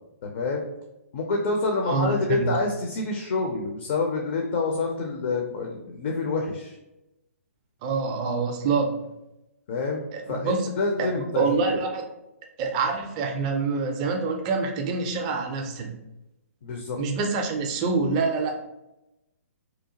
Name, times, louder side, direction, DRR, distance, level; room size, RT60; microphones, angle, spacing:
voice 1, 0.2-0.6 1.1-6.7 9.7-10.0 10.3-11.8 16.6-17.0, left 3 dB, 40° left, 1 dB, 0.4 m, -27 dB
voice 2, 1.8-2.5 7.8-8.9 10.1-10.6 11.0-11.1 11.4-12.0 12.6-16.0 17.0-18.7, right 4 dB, 25° right, 3 dB, 0.4 m, -26 dB
2.8 x 2.1 x 2.8 m, 0.92 s
figure-of-eight pair, 130°, 8 cm